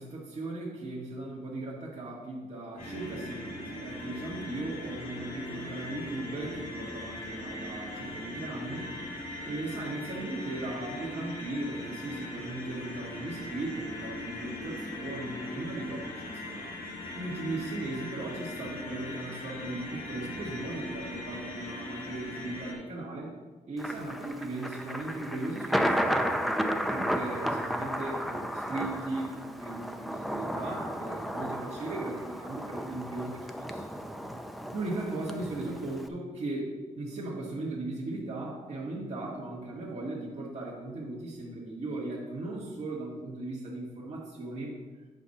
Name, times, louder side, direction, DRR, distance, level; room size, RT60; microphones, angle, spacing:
voice 1, 0.0-9.0 9.4-16.7 17.2-23.3 23.7-26.4 26.9-33.8 34.7-44.7, right 2 dB, 50° right, -5 dB, 1.8 m, -37 dB
sound 1, 2.8-22.7, left 1 dB, 85° left, 2.2 m, -40 dB
Thunder, 23.8-36.1, equal, ahead, 0.6 m, -33 dB
8.2 x 4.2 x 6.6 m, 1.3 s
cardioid pair, 100°, 14 cm